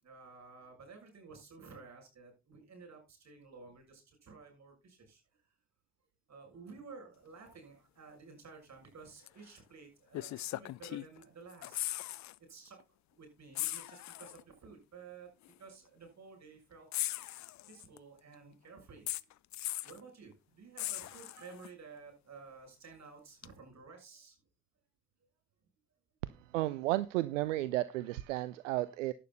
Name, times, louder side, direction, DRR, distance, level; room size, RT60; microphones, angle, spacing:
voice 1, 0.0-5.2 6.3-11.8 12.4-12.8 13.1-15.3 15.6-16.9 17.7-19.1 19.8-24.4, right 4 dB, 45° right, 3 dB, 6.7 m, -53 dB
sound 1, 9.3-9.4 10.1-11.2 11.5-12.4 12.7-12.8 13.5-14.4 15.4-15.5 16.9-18.0 19.1-20.0 20.8-21.7 23.4-23.5, left 16 dB, 50° left, 0.6 m, -39 dB
voice 2, 26.5-29.1, right 16 dB, 80° right, 16 dB, 0.6 m, -33 dB
11.5 x 8.7 x 4.1 m, 0.28 s
figure-of-eight pair, 45°, 37 cm